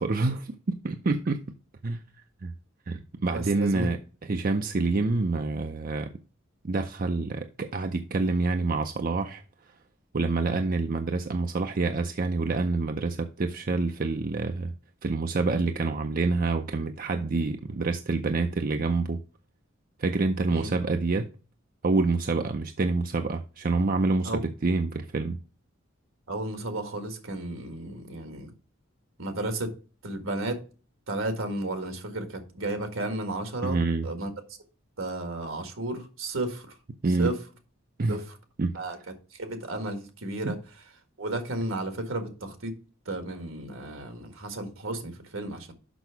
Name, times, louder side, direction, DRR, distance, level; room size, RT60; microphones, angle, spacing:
voice 1, 0.0-1.4 1.8-2.0 2.4-2.5 2.9-4.0 4.3-6.1 6.6-9.4 10.1-14.7 15.0-19.2 20.0-21.3 21.8-25.4 33.6-34.0 37.0-37.3 38.0-38.2 38.6-38.7 40.4-40.5, right 3 dB, 45° right, 0.5 m, -27 dB
voice 2, 3.3-3.9 20.5-20.7 24.2-24.5 26.3-28.5 29.2-29.7 30.0-30.6 31.1-33.8 34.0-34.3 35.0-36.8 37.2-37.4 38.1-38.4 38.7-40.8 41.2-42.8 43.1-45.7, right 1 dB, 75° right, 1.8 m, -33 dB
6.1 x 5.9 x 5.7 m
head